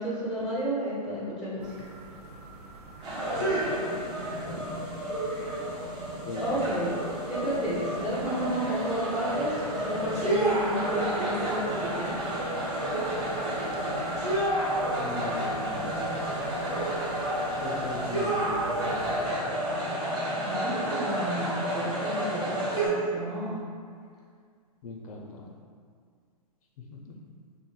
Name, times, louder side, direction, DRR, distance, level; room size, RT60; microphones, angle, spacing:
voice 1, 0.0-1.7 6.4-7.0 7.3-12.1 20.4-23.6, right 1 dB, ahead, -8 dB, 0.5 m, -31 dB
cricket - frog - alien, 1.6-19.2, right 2 dB, 75° right, 0.6 m, -44 dB
sound 1, 3.0-22.9, right 1 dB, 25° right, 0.9 m, -30 dB
voice 2, 3.3-3.7 4.3-4.8 6.2-6.8 15.0-16.0 17.6-19.5 24.8-25.5 26.9-27.1, left 3 dB, 60° left, -1 dB, 0.4 m, -40 dB
3.0 x 2.5 x 2.2 m, 2.1 s
hypercardioid pair, 125°, 20 cm